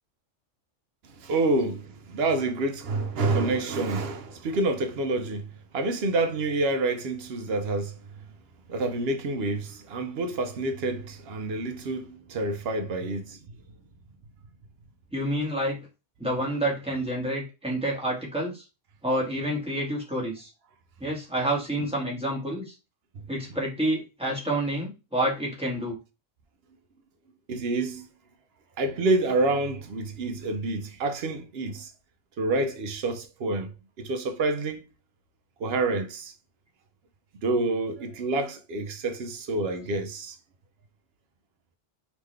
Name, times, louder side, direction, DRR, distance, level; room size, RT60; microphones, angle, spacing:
voice 1, 1.2-8.0 8.7-13.4 27.5-28.0 28.8-31.9 32.4-33.7 34.0-34.8 35.6-36.3 37.4-40.4, right 2 dB, 60° right, 0.9 m, -28 dB
voice 2, 15.1-15.9 16.2-18.6 19.0-20.5 21.0-22.7 23.3-26.0, right 1 dB, 5° right, 1.5 m, -28 dB
3.7 x 3.0 x 3.2 m
omnidirectional pair, 1.3 m